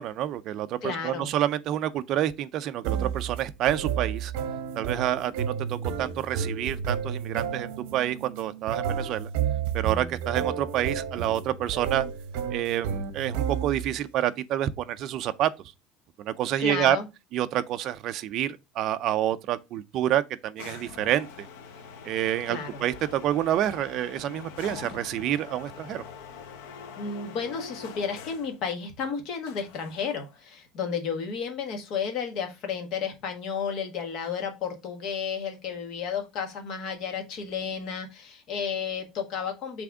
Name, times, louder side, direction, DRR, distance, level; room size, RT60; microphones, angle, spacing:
voice 1, 0.0-4.3 4.7-9.3 9.7-12.1 12.5-15.5 16.2-17.0 17.3-21.5 22.0-26.0, right 12 dB, 35° right, 0.5 m, -28 dB
voice 2, 0.8-1.3 16.6-17.1 22.5-22.8 27.0-39.8, left 6 dB, 40° left, 1.5 m, -32 dB
sound 1, 2.8-14.0, right 7 dB, 65° right, 0.9 m, -31 dB
sound 2, 20.6-28.6 29.4-30.4, left 6 dB, 75° left, 1.0 m, -43 dB
6.0 x 3.4 x 4.8 m
cardioid pair, 180°, 0 cm